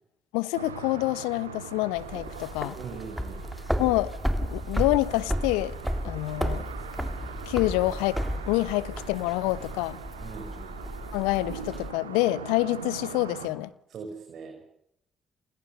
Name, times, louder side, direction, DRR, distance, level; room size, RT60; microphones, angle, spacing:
voice 1, 0.3-2.8 3.8-4.1 4.4-5.8 6.0-6.6 7.5-8.2 8.5-10.0 11.1-13.7, left 19 dB, 75° left, 1.2 m, -27 dB
sound 1, 0.5-13.5, right 6 dB, 85° right, 3.0 m, -42 dB
sound 2, 2.0-11.9, equal, ahead, 3.5 m, -33 dB
voice 2, 2.7-3.5 10.2-10.8 13.9-14.7, right 5 dB, 55° right, 5.8 m, -41 dB
29.5 x 29.5 x 6.7 m
figure-of-eight pair, 40°, 0 cm